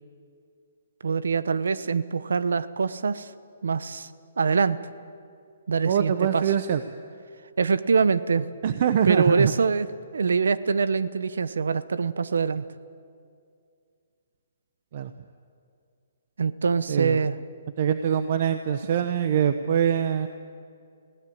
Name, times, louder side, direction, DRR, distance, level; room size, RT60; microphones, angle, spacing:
voice 1, 1.0-3.3 3.6-4.1 4.4-4.8 5.7-6.4 7.6-8.5 9.0-9.9 10.1-12.7 16.4-17.4, right 5 dB, 85° right, 15 dB, 0.9 m, -24 dB
voice 2, 5.9-6.8 8.6-9.5 14.9-15.1 16.9-17.2 17.8-20.3, right 9 dB, 45° right, 10 dB, 0.8 m, -23 dB
21.5 x 16.5 x 8.7 m, 2.3 s
hypercardioid pair, 160°, 0 cm